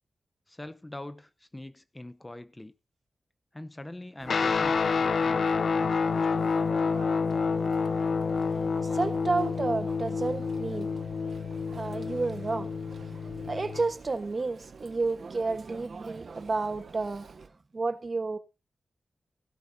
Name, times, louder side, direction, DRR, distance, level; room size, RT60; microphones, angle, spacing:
voice 1, 0.5-2.7 3.5-6.5, left 1 dB, 15° left, 0.7 m, -43 dB
Chatter, 4.2-17.5, right 5 dB, 70° right, 0.8 m, -48 dB
Guitar, 4.3-13.9, left 5 dB, 70° left, 0.6 m, -28 dB
voice 2, 8.8-10.9 11.7-12.7 13.5-17.3 17.7-18.4, right 3 dB, 40° right, 1.2 m, -31 dB
16.5 x 12.0 x 2.7 m
wide cardioid pair, 80°, 0 cm